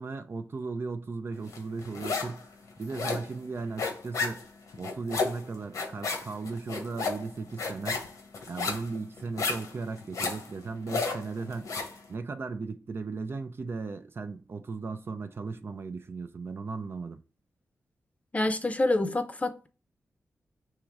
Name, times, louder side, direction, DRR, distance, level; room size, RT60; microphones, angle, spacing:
voice 1, 0.0-2.5 2.8-4.5 4.8-8.0 8.5-11.7 12.1-17.2, right 4 dB, 45° right, 0.4 m, -36 dB
sound 1, 1.5-2.4 2.7-12.0, left 4 dB, 85° left, 1.1 m, -33 dB
voice 2, 18.3-19.7, left 2 dB, 25° left, 0.6 m, -27 dB
3.7 x 3.0 x 4.6 m
cardioid pair, 75°, 5 cm